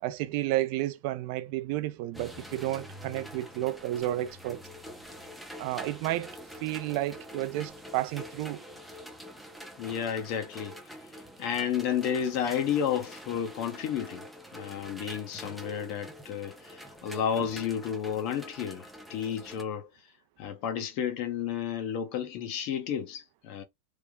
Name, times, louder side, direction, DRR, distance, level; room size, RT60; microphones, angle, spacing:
voice 1, 0.0-4.6 5.6-6.3 6.6-8.6, right 15 dB, 50° right, 0.4 m, -31 dB
sound 1, 2.1-19.6, equal, ahead, 0.6 m, -46 dB
voice 2, 9.8-10.8 11.4-14.2 14.5-19.9 20.4-23.6, left 8 dB, 45° left, 0.9 m, -32 dB
3.3 x 2.1 x 3.5 m
supercardioid pair, 150°, 0 cm